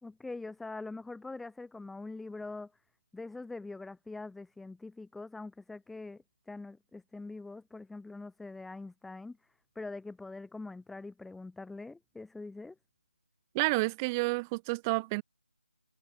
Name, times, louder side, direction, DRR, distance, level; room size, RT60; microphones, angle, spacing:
voice 1, 0.0-2.7 3.1-9.4 9.8-12.8, left 3 dB, ahead, 2.0 m, -43 dB
voice 2, 13.5-15.2, right 26 dB, 15° right, 3.3 m, -30 dB
figure-of-eight pair, 160°, 6 cm